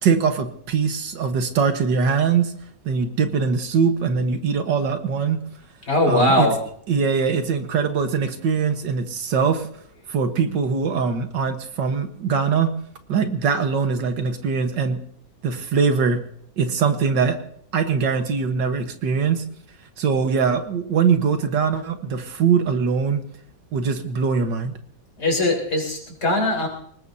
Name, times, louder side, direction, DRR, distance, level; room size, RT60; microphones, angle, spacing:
voice 1, 0.0-2.5 2.9-5.4 6.1-6.5 6.9-9.7 10.1-12.7 13.1-15.0 15.4-16.2 16.6-17.4 17.7-19.4 20.0-23.2 23.7-24.7, right 6 dB, 75° right, 7 dB, 2.0 m, -22 dB
voice 2, 5.9-6.6 25.2-26.7, left 1 dB, 55° left, -1 dB, 4.6 m, -20 dB
23.5 x 19.5 x 2.7 m, 0.64 s
omnidirectional pair, 1.9 m